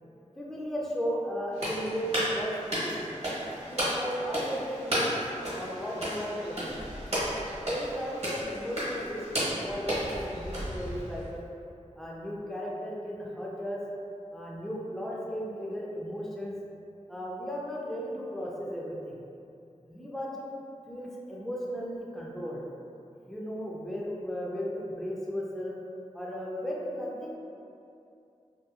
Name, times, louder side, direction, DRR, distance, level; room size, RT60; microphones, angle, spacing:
voice 1, 0.4-3.1 3.7-5.2 5.5-6.8 7.6-11.4 12.0-13.8 14.3-16.5 17.1-19.2 19.9-20.5 20.9-22.7 23.3-25.8 26.1-27.4, equal, 5° left, -5 dB, 0.4 m, -35 dB
sound 1, 1.5-11.3, equal, 55° right, 1.0 m, -33 dB
2.8 x 2.3 x 2.3 m, 2.6 s
wide cardioid pair, 55°, 13 cm